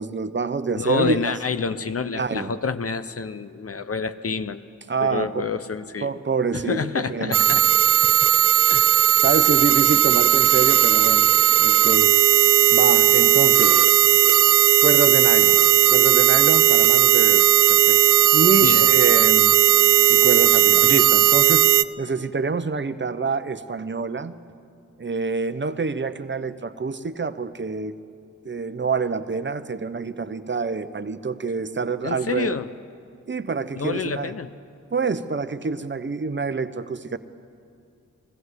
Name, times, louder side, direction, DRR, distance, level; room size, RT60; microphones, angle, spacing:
voice 1, 0.0-1.3 2.2-2.5 4.9-5.5 6.0-7.6 8.8-8.9 9.2-11.3 11.6-12.1 12.7-13.8 14.8-15.6 15.9-18.0 18.3-19.5 20.1-21.7 22.0-24.3 25.0-27.9 28.4-32.6 33.3-34.3 34.9-37.2, right 4 dB, 35° right, 11 dB, 1.0 m, -26 dB
voice 2, 0.8-4.6 5.0-6.1 6.5-7.6 8.7-8.9 18.6-18.9 20.8-20.9 32.0-32.7 33.7-34.5, left 5 dB, 45° left, 11 dB, 0.9 m, -28 dB
sound 1, 7.3-21.8, right 12 dB, 70° right, 0.5 m, -16 dB
21.0 x 15.0 x 8.2 m, 2.4 s
cardioid pair, 50°, 32 cm